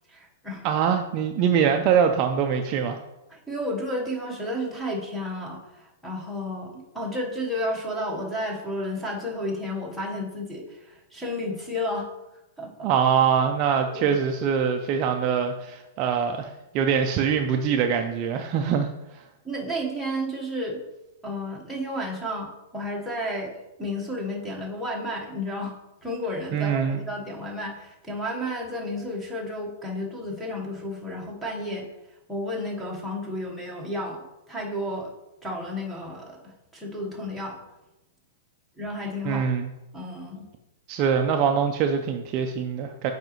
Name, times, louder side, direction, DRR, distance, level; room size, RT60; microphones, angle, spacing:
voice 1, 0.1-0.6 3.3-12.1 12.6-12.9 13.9-14.1 19.4-20.8 21.2-25.7 26.0-31.9 32.3-35.1 35.4-37.6 38.8-39.5 39.9-40.5, left 1 dB, ahead, -2 dB, 1.1 m, -32 dB
voice 2, 0.6-3.0 12.8-19.2 26.5-27.0 39.2-39.7 40.9-43.1, right 7 dB, 30° right, 4 dB, 0.4 m, -23 dB
7.7 x 4.9 x 3.0 m, 0.95 s
hypercardioid pair, 165°, 0 cm